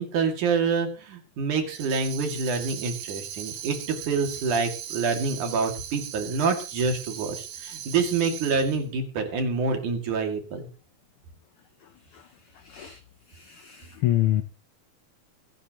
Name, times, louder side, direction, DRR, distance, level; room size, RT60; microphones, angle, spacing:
voice 1, 0.0-10.7, right 4 dB, 80° right, 4 dB, 3.8 m, -27 dB
Tambourine, 1.7-8.8, right 9 dB, 65° right, 2.3 m, -38 dB
voice 2, 12.7-13.0 13.3-14.4, left 13 dB, 80° left, 10 dB, 1.2 m, -26 dB
23.5 x 10.0 x 3.0 m, 0.35 s
omnidirectional pair, 3.5 m